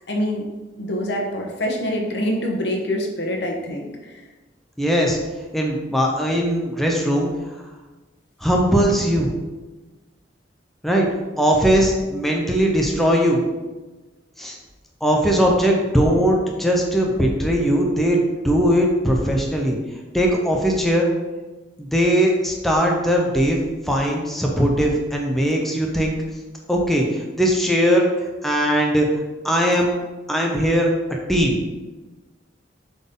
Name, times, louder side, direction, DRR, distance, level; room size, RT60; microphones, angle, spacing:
voice 1, 0.1-0.4 0.8-4.2, equal, 65° left, 1 dB, 1.1 m, -25 dB
voice 2, 4.8-5.2 5.5-7.3 8.4-9.3 10.8-11.1 11.4-13.4 14.4-14.5 15.0-19.8 20.1-21.1 21.8-26.2 26.7-28.1 28.4-29.1 29.4-29.9 30.3-30.9 31.3-31.6, equal, ahead, -1 dB, 0.7 m, -19 dB
7.4 x 4.2 x 3.8 m, 1.2 s
head